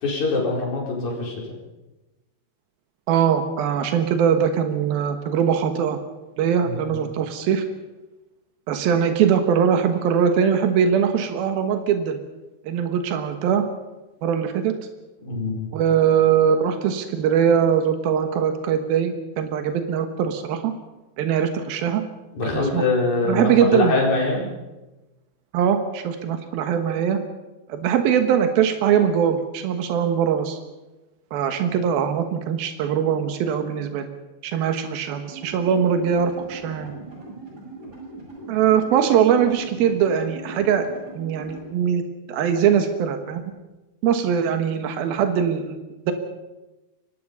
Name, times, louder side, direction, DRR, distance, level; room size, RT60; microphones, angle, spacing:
voice 1, 0.0-1.4 6.6-7.0 15.2-15.7 22.3-24.4, left 3 dB, 50° left, -2 dB, 5.9 m, -24 dB
voice 2, 3.1-6.0 6.4-7.6 8.7-12.2 12.7-13.6 14.2-14.7 15.7-20.7 21.2-22.0 22.5-22.8 23.3-23.9 25.5-27.2 27.7-30.6 31.3-34.1 34.4-36.9 38.5-40.9 41.1-42.0 42.3-43.4 44.0-45.8 46.1-46.2, right 8 dB, 80° right, 7 dB, 3.2 m, -21 dB
sound 1, 35.3-41.7, right 2 dB, 25° right, 7.2 m, -40 dB
24.0 x 20.0 x 5.5 m, 1.1 s
omnidirectional pair, 4.2 m